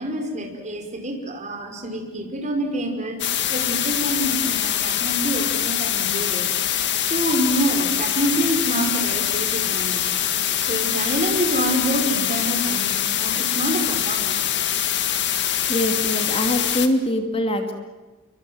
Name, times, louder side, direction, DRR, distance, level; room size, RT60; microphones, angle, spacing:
voice 1, 0.0-3.2 3.5-6.5 7.0-10.0 10.6-14.4, right 1 dB, 35° right, 3 dB, 5.5 m, -26 dB
sound 1, 3.2-16.9, left 10 dB, 55° left, 1.9 m, -24 dB
voice 2, 15.7-17.7, left 1 dB, 25° left, 5 dB, 2.6 m, -23 dB
29.5 x 24.0 x 8.0 m, 1.2 s
head